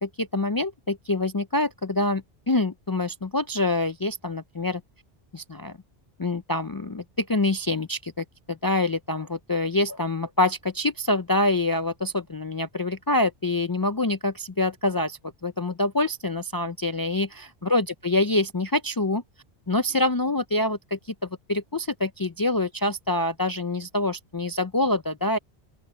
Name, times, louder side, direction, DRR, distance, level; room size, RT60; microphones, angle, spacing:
voice 1, 0.0-4.8 5.3-5.8 6.2-19.2 19.7-25.4, left 2 dB, 35° left, 0.3 m, -26 dB
open air
omnidirectional pair, 1.1 m